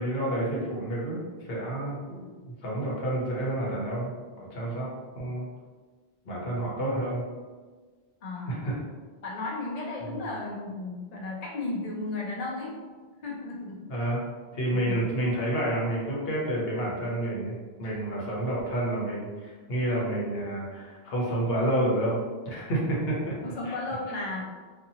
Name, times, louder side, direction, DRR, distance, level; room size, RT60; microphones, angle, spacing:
voice 1, 0.0-5.5 6.2-7.2 8.5-8.7 10.1-10.2 13.9-14.2 14.5-22.2 22.4-23.7, right 1 dB, 65° left, -5 dB, 1.0 m, -29 dB
voice 2, 8.2-8.7 9.2-12.8 13.2-13.8 14.7-15.0 23.4-24.4, left 2 dB, 50° left, -2 dB, 0.5 m, -34 dB
2.6 x 2.4 x 2.7 m, 1.4 s
omnidirectional pair, 1.1 m